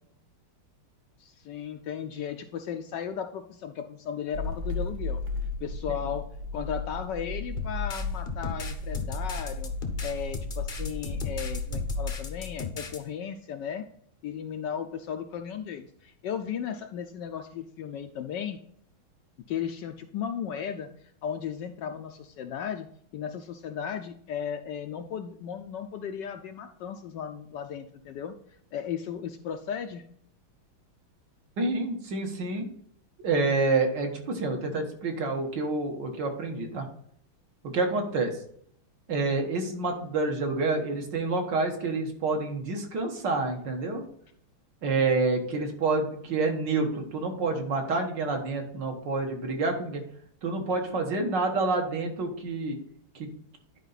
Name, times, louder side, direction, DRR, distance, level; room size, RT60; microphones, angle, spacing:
voice 1, 1.2-5.2 5.6-6.2 6.5-9.7 10.0-13.8 14.2-18.6 19.5-20.9 21.2-22.9 23.1-28.3 28.7-30.1, left 8 dB, 70° left, 6 dB, 1.1 m, -35 dB
sound 1, 4.3-12.1, left 2 dB, 40° right, 1.3 m, -34 dB
sound 2, 7.6-13.0, left 6 dB, 40° left, 0.7 m, -36 dB
voice 2, 31.6-32.7 33.2-36.9 37.6-38.4 39.1-44.0 44.8-50.0 50.4-52.8 53.2-53.3, right 3 dB, 60° right, 3 dB, 1.9 m, -28 dB
11.0 x 4.8 x 4.0 m, 0.66 s
omnidirectional pair, 2.3 m